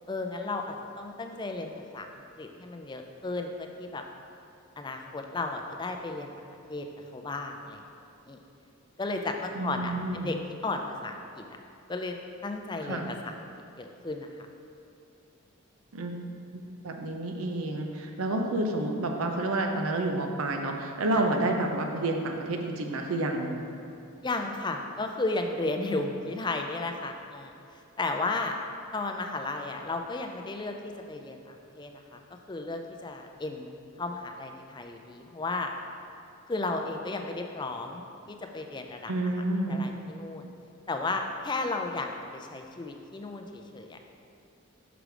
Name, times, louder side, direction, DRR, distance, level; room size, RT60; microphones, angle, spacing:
voice 1, 0.1-2.1 2.4-4.0 4.8-6.3 6.7-6.8 7.1-7.8 8.3-8.4 9.0-10.4 10.6-11.4 11.9-12.1 12.4-13.2 13.8-14.3 21.2-21.3 24.2-27.5 28.0-28.6 28.9-32.2 32.5-33.7 34.0-35.7 36.5-39.1 39.7-40.5 40.9-44.1, left 3 dB, 20° left, 4 dB, 0.4 m, -34 dB
voice 2, 9.5-10.4 12.8-13.1 15.9-16.2 16.5-23.6 39.1-39.9, right 2 dB, 80° right, 3 dB, 0.7 m, -29 dB
6.2 x 5.0 x 4.9 m, 2.7 s
head